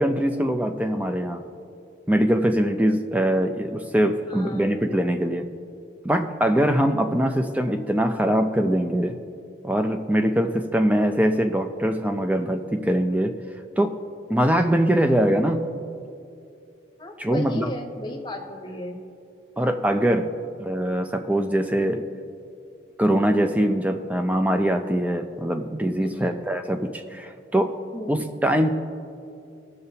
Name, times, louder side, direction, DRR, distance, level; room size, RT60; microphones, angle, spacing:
voice 1, 0.0-1.5 2.1-5.5 6.0-9.2 9.6-13.3 13.8-14.0 14.3-15.7 17.2-17.7 19.6-22.1 23.0-27.7 28.1-28.8, equal, 10° right, 6 dB, 0.4 m, -22 dB
voice 2, 4.3-4.9 17.0-19.0 26.0-26.4 27.9-28.2, left 1 dB, 25° left, 2 dB, 0.9 m, -35 dB
19.0 x 6.7 x 2.8 m, 2.6 s
head